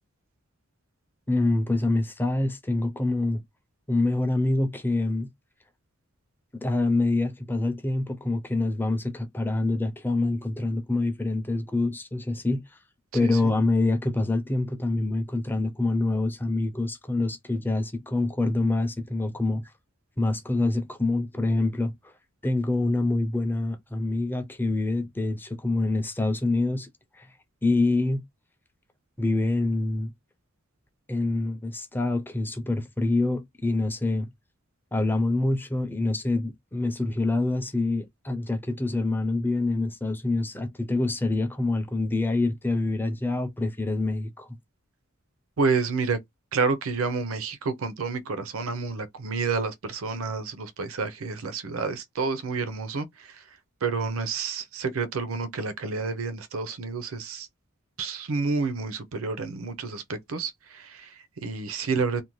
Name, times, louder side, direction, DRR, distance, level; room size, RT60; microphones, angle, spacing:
voice 1, 1.3-3.4 3.9-5.3 6.5-12.6 13.1-19.6 20.2-22.1 22.4-26.9 27.2-27.3 27.6-28.2 29.2-30.1 31.1-34.3 34.9-44.5, left 2 dB, 10° left, 0.4 m, -26 dB
voice 2, 13.2-13.5 45.6-46.2 46.5-53.4 53.8-57.5 58.0-62.2, right 4 dB, 80° right, 0.6 m, -29 dB
2.6 x 2.1 x 3.0 m
head